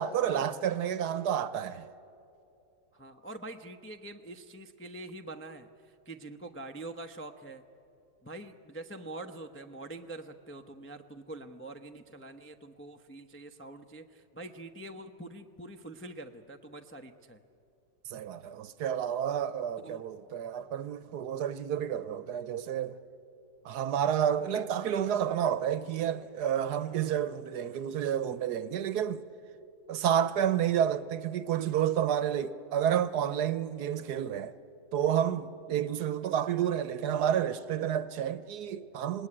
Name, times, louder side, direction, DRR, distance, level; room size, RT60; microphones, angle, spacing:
voice 1, 0.0-1.9 18.1-23.0 23.6-29.2 29.9-34.5 34.9-39.3, right 9 dB, 70° right, 1.3 m, -30 dB
voice 2, 2.9-7.6 8.2-17.4 19.8-20.0 35.7-35.9, right 2 dB, 15° left, 0.4 m, -45 dB
27.0 x 19.5 x 9.8 m
omnidirectional pair, 1.9 m